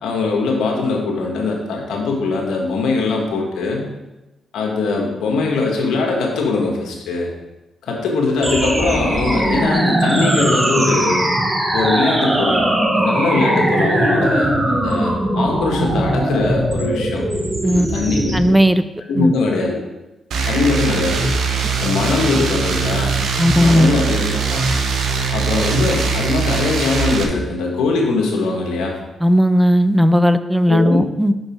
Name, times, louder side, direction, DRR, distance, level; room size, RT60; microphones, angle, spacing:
voice 1, 0.0-3.9 4.5-7.3 7.8-11.2 11.7-12.6 12.9-17.2 17.7-18.6 19.1-19.8 20.5-21.3 21.8-23.1 23.5-24.6 25.3-29.0 30.7-31.1, left 3 dB, 85° left, 0 dB, 1.6 m, -21 dB
sound 1, 8.4-18.4, right 1 dB, 25° right, 1.3 m, -19 dB
voice 2, 18.3-18.8 19.2-19.3 23.4-23.9 29.2-31.3, equal, 5° right, 12 dB, 0.5 m, -15 dB
sound 2, 20.3-27.2, right 4 dB, 80° right, 0.9 m, -21 dB
6.4 x 5.9 x 4.5 m, 1.0 s
cardioid pair, 70°, 0 cm